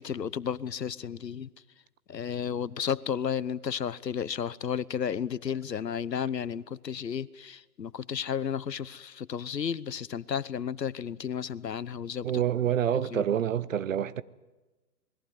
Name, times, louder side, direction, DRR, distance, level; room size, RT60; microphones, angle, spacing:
voice 1, 0.0-1.5 2.1-12.4 12.9-13.2, left 7 dB, 90° left, 1.1 m, -33 dB
voice 2, 12.2-14.2, right 10 dB, 50° right, 1.0 m, -27 dB
27.0 x 20.5 x 9.4 m
hypercardioid pair, 145°, 48 cm